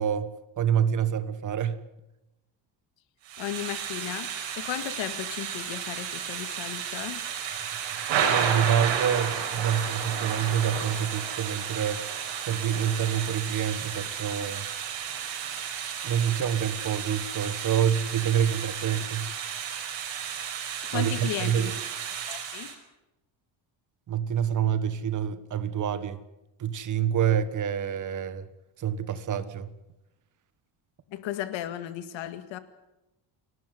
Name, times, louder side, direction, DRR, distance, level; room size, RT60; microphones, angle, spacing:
voice 1, 0.0-1.8 8.3-12.0 12.4-14.7 16.0-19.3 20.9-21.7 24.1-26.2 26.6-28.4 28.8-29.7, right 9 dB, 40° right, 13 dB, 1.5 m, -27 dB
Thunder / Rain, 3.3-22.7, right 8 dB, 75° right, 5.8 m, -32 dB
voice 2, 3.4-4.3 4.6-7.2 20.9-21.8 22.3-22.7 31.1-32.6, left 12 dB, 75° left, 11 dB, 2.0 m, -35 dB
29.5 x 13.0 x 9.4 m, 0.94 s
cardioid pair, 165°, 46 cm